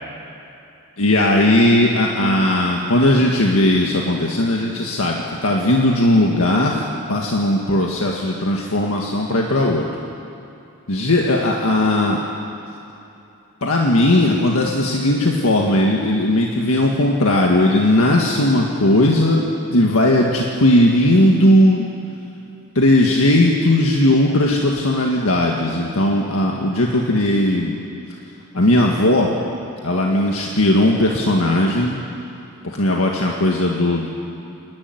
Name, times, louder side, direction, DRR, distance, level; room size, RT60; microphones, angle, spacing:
voice 1, 1.0-9.9 10.9-12.2 13.6-19.4 19.7-21.9 22.8-27.7 28.5-29.3 29.8-31.9 32.7-34.1, left 1 dB, 90° left, -1 dB, 1.8 m, -17 dB
27.0 x 11.5 x 9.6 m, 2.8 s
head